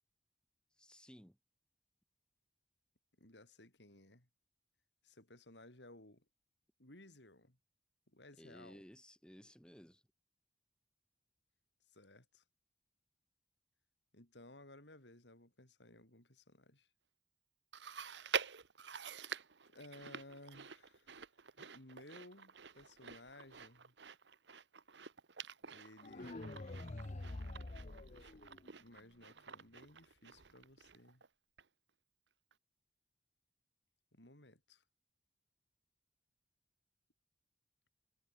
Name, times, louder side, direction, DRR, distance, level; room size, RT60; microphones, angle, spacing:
voice 1, 0.8-1.4 8.4-10.0, equal, 5° left, 3.0 m, -57 dB
voice 2, 3.2-4.3 5.0-6.2 6.8-7.6 8.1-8.8 11.9-12.4 14.1-16.9 18.9-19.1 19.7-21.1 21.6-23.9 25.7-26.3 28.0-28.4 28.8-31.2 34.1-34.8, left 1 dB, 80° left, 6.5 m, -58 dB
Chewing mastication, 17.7-31.3 31.6-31.7 32.5-32.6, right 7 dB, 85° right, 1.2 m, -47 dB
sound 1, 26.0-29.0, left 2 dB, 40° left, 0.8 m, -47 dB
head